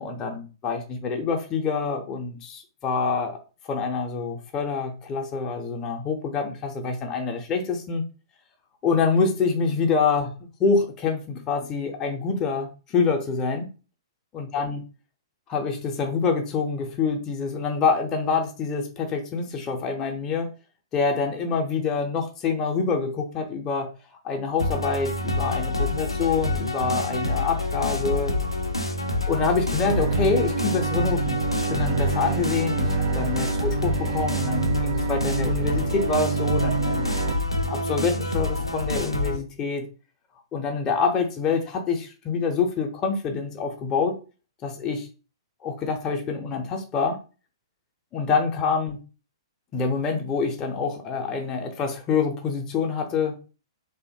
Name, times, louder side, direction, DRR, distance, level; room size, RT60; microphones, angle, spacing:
voice 1, 0.0-3.4 3.6-8.0 8.8-13.7 14.3-14.8 15.5-20.5 20.9-23.9 24.2-28.3 29.3-32.9 33.2-37.1 37.7-39.8 40.5-44.1 44.6-45.1 45.6-47.2 48.1-49.0 49.7-53.4, left 5 dB, 20° left, 3 dB, 0.5 m, -26 dB
sound 1, 24.6-39.4, left 2 dB, 90° left, 0.4 m, -27 dB
Bowed string instrument, 29.8-37.3, right 6 dB, 40° right, 0.4 m, -28 dB
2.7 x 2.1 x 2.7 m, 0.34 s
figure-of-eight pair, 115°, 3 cm